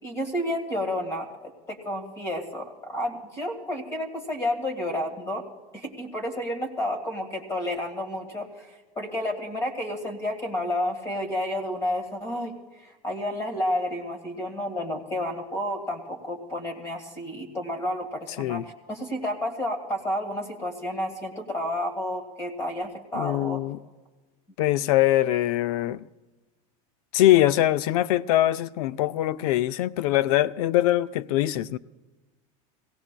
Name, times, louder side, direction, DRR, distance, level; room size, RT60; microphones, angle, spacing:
voice 1, 0.0-5.4 5.7-8.7 8.9-12.5 12.8-23.6, left 1 dB, 15° left, 1.7 m, -31 dB
voice 2, 23.1-23.8 24.6-26.0 27.1-31.8, left 14 dB, 85° left, 0.5 m, -22 dB
23.0 x 17.5 x 2.2 m
cardioid pair, 170°, 18 cm